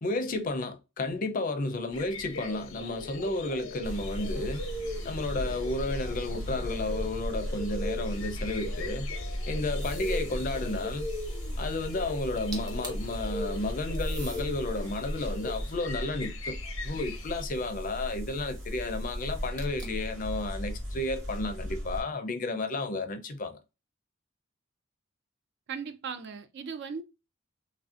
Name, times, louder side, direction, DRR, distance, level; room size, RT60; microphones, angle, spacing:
voice 1, 0.0-4.6 5.0-9.1 9.5-11.1 11.6-16.6 16.8-23.6, left 2 dB, 40° left, 0.5 m, -32 dB
sound 1, 1.9-17.4, left 2 dB, 85° left, 0.7 m, -40 dB
sound 2, 3.8-22.0, equal, 85° right, 1.4 m, -36 dB
sound 3, 9.8-10.3 12.3-12.4 12.5-13.1 13.9-14.5 15.2-16.6 19.6-20.1, right 2 dB, 20° right, 0.7 m, -45 dB
voice 2, 25.7-27.0, right 6 dB, 55° right, 0.4 m, -37 dB
3.1 x 2.5 x 2.4 m
head